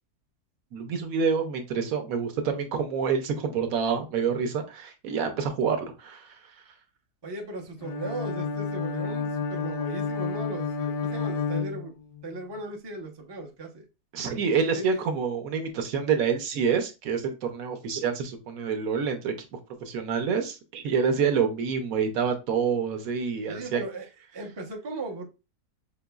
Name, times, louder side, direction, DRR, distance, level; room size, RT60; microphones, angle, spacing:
voice 1, 0.7-6.4 14.1-23.8, right 6 dB, 65° right, 1.0 m, -27 dB
voice 2, 7.2-11.9 12.2-13.9 14.7-15.0 23.5-24.1 24.3-25.3, right 2 dB, 35° right, 0.4 m, -37 dB
Bowed string instrument, 7.8-12.4, left 5 dB, 70° left, 0.8 m, -30 dB
5.1 x 2.9 x 2.2 m
omnidirectional pair, 1.7 m